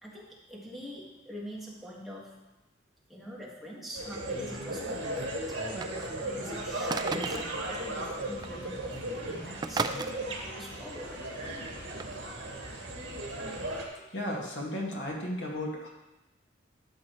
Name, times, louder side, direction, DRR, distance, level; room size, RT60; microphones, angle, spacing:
voice 1, 0.0-2.4 3.1-11.7 12.0-12.1 13.9-14.1, equal, ahead, -5 dB, 1.8 m, -44 dB
sound 1, 3.9-13.8, right 1 dB, 70° right, 2.0 m, -36 dB
sound 2, 5.5-6.3 6.9-7.6 8.4-8.5 8.8-9.0 9.6-10.1 12.0-12.1, right 4 dB, 20° right, 0.3 m, -34 dB
voice 2, 14.1-15.9, left 1 dB, 65° left, -2 dB, 2.0 m, -34 dB
12.5 x 7.4 x 3.2 m, 0.98 s
head